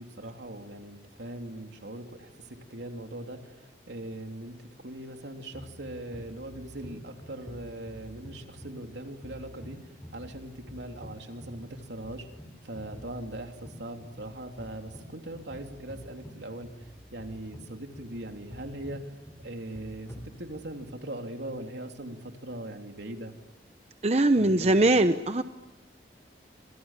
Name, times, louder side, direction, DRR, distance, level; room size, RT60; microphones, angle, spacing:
voice 1, 0.0-4.6 4.8-12.3 12.6-19.1 19.4-23.3 24.4-25.0, right 1 dB, 80° right, 4 dB, 3.3 m, -40 dB
sound 1, 5.5-20.9, equal, 15° left, 3.7 m, -47 dB
voice 2, 24.0-25.4, right 2 dB, 35° right, 9 dB, 0.9 m, -21 dB
28.5 x 26.5 x 7.5 m, 1.1 s
head